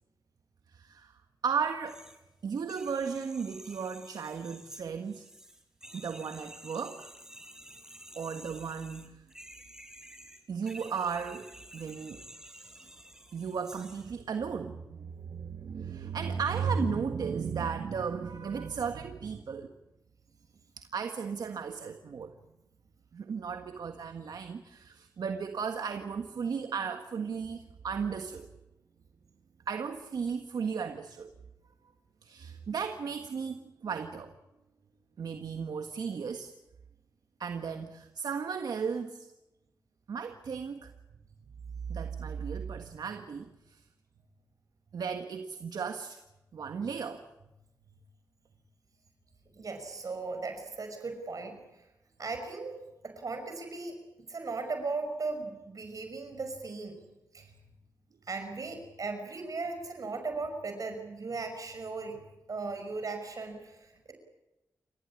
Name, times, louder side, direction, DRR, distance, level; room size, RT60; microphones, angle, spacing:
voice 1, 0.7-2.0 2.4-5.3 5.9-7.1 8.1-9.2 10.5-12.2 13.3-19.7 20.8-22.4 23.1-28.5 29.7-31.3 32.2-34.3 35.2-36.5 37.4-39.3 40.1-40.9 41.9-43.8 44.9-46.2 46.5-47.2, right 6 dB, 75° right, 6 dB, 1.6 m, -35 dB
sound 1, 1.9-2.2 2.6-14.1, right 1 dB, 10° right, 5.3 m, -51 dB
voice 2, 49.5-51.5 52.2-52.8 53.0-54.0 54.3-57.0 57.3-57.5 58.3-62.2 62.5-64.1, right 3 dB, 60° right, 6 dB, 5.7 m, -37 dB
29.0 x 15.5 x 9.9 m, 0.97 s
cardioid pair, 60°, 7 cm